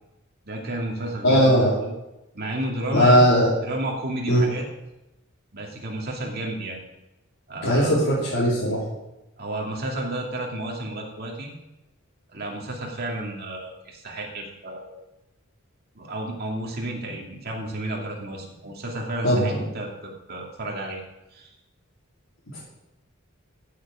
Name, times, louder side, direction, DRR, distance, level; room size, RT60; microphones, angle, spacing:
voice 1, 0.4-1.9 2.3-3.3 3.6-4.7 5.5-6.8 7.5-8.0 9.4-11.5 12.3-15.0 15.9-21.0 21.3-21.5, right 1 dB, 50° right, -1 dB, 2.5 m, -32 dB
voice 2, 1.2-1.7 2.9-3.5 4.3-4.4 7.6-8.8 19.2-19.6 22.5-22.6, equal, 80° left, -8 dB, 3.9 m, -18 dB
15.0 x 7.4 x 5.0 m, 0.95 s
head